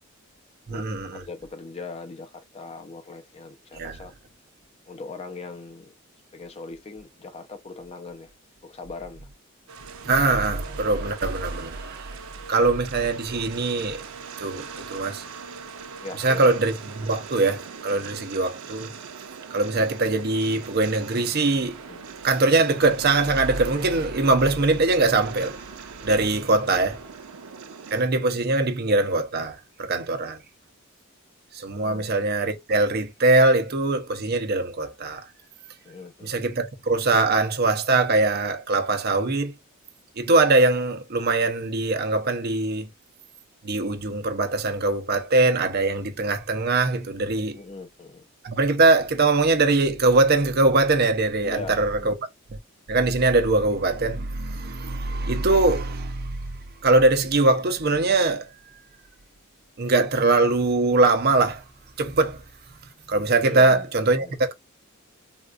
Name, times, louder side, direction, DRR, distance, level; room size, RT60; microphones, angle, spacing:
voice 1, 0.7-1.2 3.7-4.0 10.0-12.2 12.5-14.0 14.4-15.2 16.2-18.9 19.5-21.8 22.2-27.0 27.9-30.4 31.5-35.3 36.2-39.5 40.2-42.9 43.6-47.6 48.4-52.1 52.9-56.5 56.8-58.5 59.8-61.6 62.0-62.4 63.1-64.5, right 3 dB, 50° right, 0.6 m, -22 dB
voice 2, 1.2-4.1 4.9-5.9 6.3-8.3 8.6-9.3 12.4-12.7 16.0-16.5 21.9-22.0 26.6-26.8 29.9-30.1 31.8-32.1 35.8-36.3 47.5-48.3 51.4-52.2 63.4-63.9 64.2-64.4, left 3 dB, 30° left, 0.5 m, -40 dB
sound 1, 9.7-28.0, right 5 dB, 85° right, 0.5 m, -41 dB
3.6 x 2.3 x 2.4 m
head